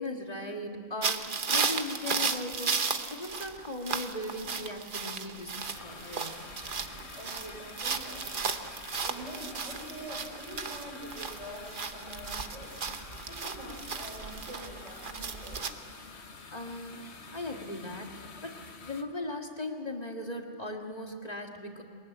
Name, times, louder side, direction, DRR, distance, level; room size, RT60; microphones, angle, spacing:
voice 1, 0.0-6.5 16.5-21.8, left 2 dB, 35° left, 2 dB, 2.0 m, -38 dB
sound 1, 1.0-15.7, right 5 dB, 45° right, 1.1 m, -35 dB
sound 2, 5.5-19.0, left 4 dB, 60° left, 1.6 m, -48 dB
voice 2, 6.8-15.9 17.2-17.3, right 1 dB, 85° right, -1 dB, 6.1 m, -46 dB
23.0 x 21.0 x 9.3 m, 2.2 s
omnidirectional pair, 1.3 m